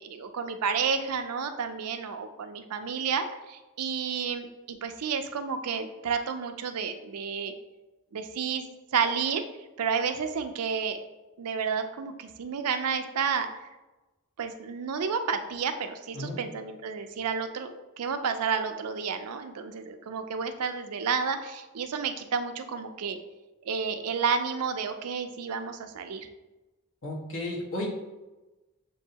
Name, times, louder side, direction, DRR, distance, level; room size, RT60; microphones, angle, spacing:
voice 1, 0.0-7.5 8.1-8.6 8.9-9.4 9.8-11.0 11.4-13.5 14.4-17.7 18.0-23.2 23.7-26.3, right 6 dB, 85° right, 8 dB, 0.5 m, -31 dB
voice 2, 27.0-27.9, left 1 dB, 60° left, -2 dB, 1.2 m, -33 dB
7.0 x 2.6 x 2.8 m, 1.1 s
head